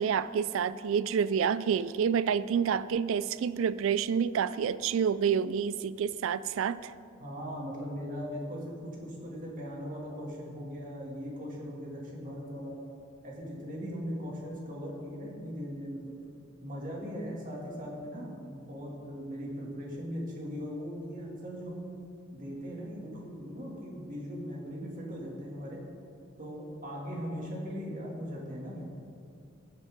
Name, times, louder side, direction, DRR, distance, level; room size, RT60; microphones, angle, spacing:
voice 1, 0.0-6.9, right 7 dB, 70° right, 16 dB, 0.3 m, -28 dB
voice 2, 7.2-12.8 13.2-16.1 16.6-21.9 22.3-25.8 26.4-28.9, equal, 40° right, -3 dB, 2.8 m, -39 dB
15.0 x 12.5 x 3.9 m, 2.4 s
head